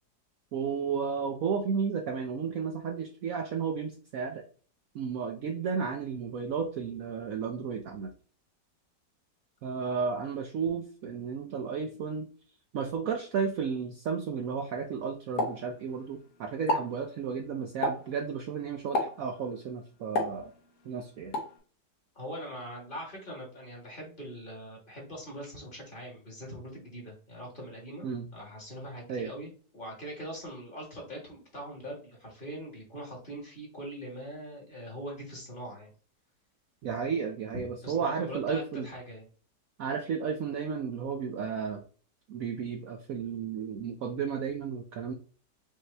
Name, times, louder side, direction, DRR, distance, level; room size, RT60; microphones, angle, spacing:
voice 1, 0.5-4.4 4.9-8.1 9.6-12.3 12.7-20.5 20.8-21.3 28.0-28.3 29.1-29.3 36.8-38.9 39.8-41.8 42.3-45.1, right 6 dB, 70° right, 3 dB, 0.9 m, -33 dB
Explosion, 15.4-16.2 16.6-17.0 17.8-18.2 18.9-19.3 20.2-20.9 21.3-21.6, left 2 dB, 65° left, 1.5 m, -31 dB
voice 2, 22.1-28.1 28.3-35.9 37.8-39.3, equal, 30° left, -1 dB, 1.7 m, -42 dB
5.2 x 2.8 x 3.2 m, 0.41 s
omnidirectional pair, 1.9 m